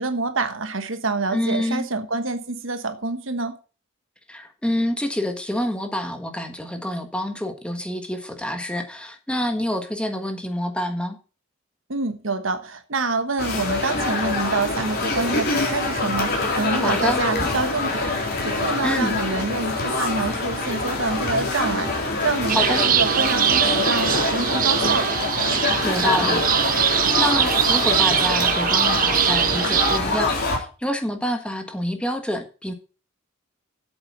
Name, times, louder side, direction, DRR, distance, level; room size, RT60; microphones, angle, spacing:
voice 1, 0.0-3.6 11.9-25.2, right 3 dB, 65° right, 1.3 m, -27 dB
voice 2, 1.3-1.9 4.3-11.2 16.8-17.2 18.8-19.2 22.5-22.8 25.8-32.7, left 1 dB, 5° left, 1.5 m, -27 dB
sound 1, 13.4-30.6, left 2 dB, 50° left, 3.4 m, -25 dB
sound 2, 22.5-30.0, right 9 dB, 45° right, 0.7 m, -22 dB
8.0 x 7.8 x 7.3 m
head